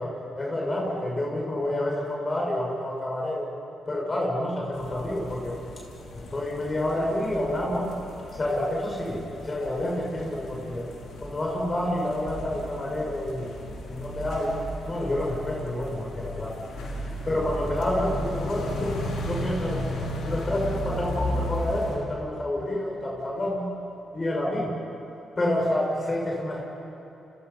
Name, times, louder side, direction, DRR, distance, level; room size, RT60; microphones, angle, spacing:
voice 1, 0.0-3.5 3.9-5.6 6.1-7.9 8.3-10.8 11.2-13.5 13.9-16.6 17.2-19.8 20.2-23.7 24.1-24.8 25.4-26.6, left 1 dB, 35° left, -2 dB, 6.6 m, -28 dB
sound 1, 4.7-22.0, left 1 dB, 80° left, 4.8 m, -35 dB
30.0 x 27.0 x 5.8 m, 2.9 s
supercardioid pair, 55°, 0 cm